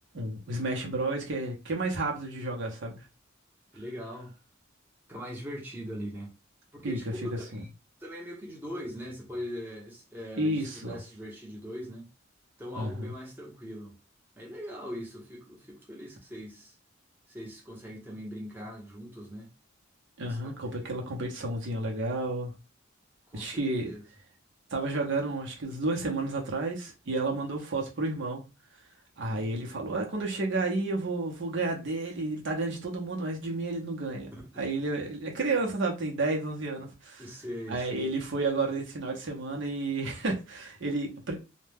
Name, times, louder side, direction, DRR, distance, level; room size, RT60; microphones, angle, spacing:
voice 1, 0.1-3.0 6.8-7.0 10.4-11.0 12.7-13.1 20.2-22.5 23.3-23.9 24.7-28.4 29.2-34.3 34.6-37.2 37.7-41.3, right 2 dB, 65° right, 0.7 m, -31 dB
voice 2, 3.7-4.3 5.1-6.3 6.7-7.7 8.0-12.1 12.6-13.9 14.4-16.7 17.3-19.5 20.2-20.9 23.3-24.0 29.3-29.5 34.3-34.7 37.2-38.1, equal, 10° right, 0.8 m, -41 dB
2.2 x 2.1 x 3.3 m
head